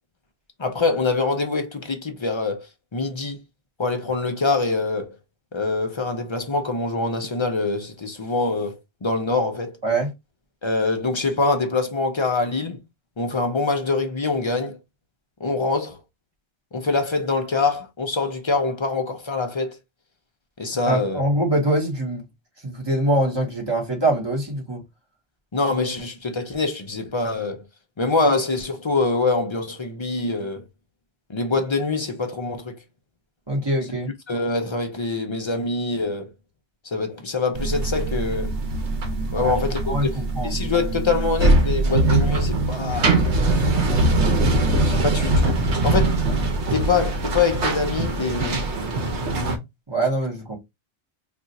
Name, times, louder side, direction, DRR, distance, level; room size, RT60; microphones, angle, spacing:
voice 1, 0.6-2.7 2.9-3.4 3.8-5.1 5.5-9.8 10.6-12.8 13.2-14.8 15.4-16.0 16.7-19.8 20.6-21.2 25.5-27.6 28.0-30.6 31.3-32.8 34.3-36.3 36.8-38.5 39.3-40.2 40.4-43.2 44.9-46.2 46.7-48.6, left 3 dB, 40° left, 0.4 m, -24 dB
voice 2, 20.9-22.3 22.6-24.8 33.5-34.1 39.4-39.5 39.9-40.5 49.9-50.6, right 1 dB, 25° right, 1.1 m, -24 dB
sound 1, 37.6-49.6, right 2 dB, 85° right, 1.0 m, -22 dB
2.5 x 2.4 x 4.0 m
omnidirectional pair, 1.1 m